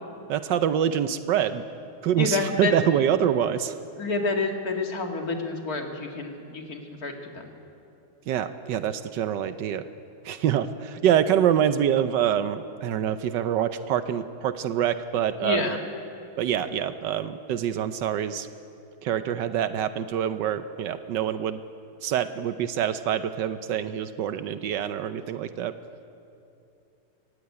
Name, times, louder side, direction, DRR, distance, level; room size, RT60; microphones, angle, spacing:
voice 1, 0.3-1.6 2.0-3.7 8.3-9.8 10.2-15.8 16.4-18.5 19.0-21.6 22.0-25.7, right 9 dB, 80° right, 10 dB, 1.4 m, -25 dB
voice 2, 2.2-2.7 4.0-7.5 15.4-15.8, left 3 dB, 55° left, 3 dB, 2.6 m, -28 dB
25.0 x 15.0 x 9.7 m, 2.7 s
omnidirectional pair, 1.9 m